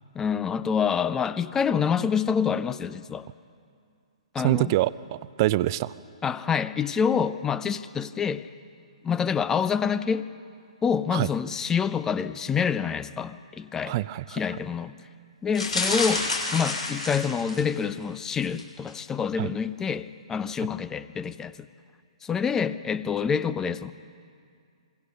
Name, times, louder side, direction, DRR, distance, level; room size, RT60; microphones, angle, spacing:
voice 1, 0.1-3.3 4.3-4.7 6.2-8.5 9.0-10.3 10.8-14.0 14.3-14.9 15.4-21.7 22.2-23.9, left 6 dB, 15° left, 15 dB, 0.6 m, -27 dB
voice 2, 4.4-5.9 11.1-11.3 13.9-14.4 19.4-19.5, right 16 dB, 40° right, 17 dB, 0.6 m, -25 dB
sound 1, 15.5-17.8 18.3-18.6 18.9-19.0, left 2 dB, 85° left, 7.0 m, -29 dB
26.5 x 23.0 x 5.4 m, 2.3 s
figure-of-eight pair, 125°, 4 cm